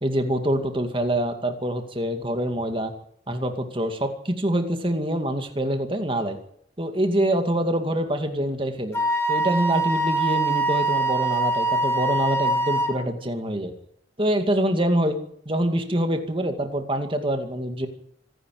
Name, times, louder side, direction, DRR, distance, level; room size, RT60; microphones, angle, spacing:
voice 1, 0.0-2.9 3.3-6.4 6.8-9.0 9.3-13.7 14.2-15.2 15.5-17.9, right 1 dB, 30° right, 6 dB, 2.3 m, -25 dB
Wind instrument woodwind instrument, 8.9-12.9, right 2 dB, 15° left, 3.8 m, -23 dB
25.5 x 11.0 x 9.4 m, 0.67 s
head